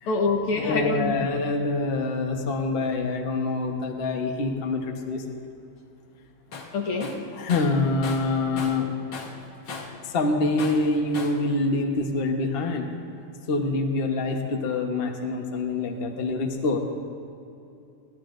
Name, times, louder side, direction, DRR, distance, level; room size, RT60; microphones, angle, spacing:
voice 1, 0.1-1.1 6.7-7.2, left 3 dB, 75° left, 1 dB, 2.2 m, -25 dB
voice 2, 0.6-5.2 7.3-8.9 10.1-12.9 13.5-16.8, left 3 dB, 40° left, 2 dB, 0.9 m, -25 dB
Tools, 6.5-6.7 7.0-8.9 9.1-10.0 10.6-11.4, left 4 dB, 60° left, 1.7 m, -37 dB
29.5 x 11.5 x 2.6 m, 2.6 s
omnidirectional pair, 2.4 m